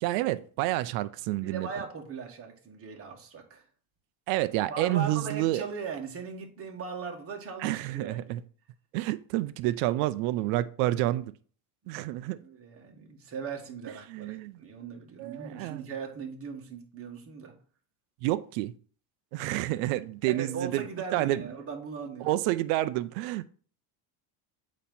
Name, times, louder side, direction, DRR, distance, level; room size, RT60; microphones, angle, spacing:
voice 1, 0.0-1.7 4.3-5.6 7.6-8.4 8.9-11.3 11.9-12.4 14.1-14.6 15.2-15.9 18.2-18.7 19.3-20.8 21.1-21.4 22.2-23.5, right 16 dB, 85° right, 0.6 m, -29 dB
voice 2, 1.4-3.6 4.7-8.3 12.4-17.6 20.3-22.4, right 5 dB, 30° right, 1.6 m, -39 dB
8.5 x 3.2 x 5.4 m
cardioid pair, 150°, 48 cm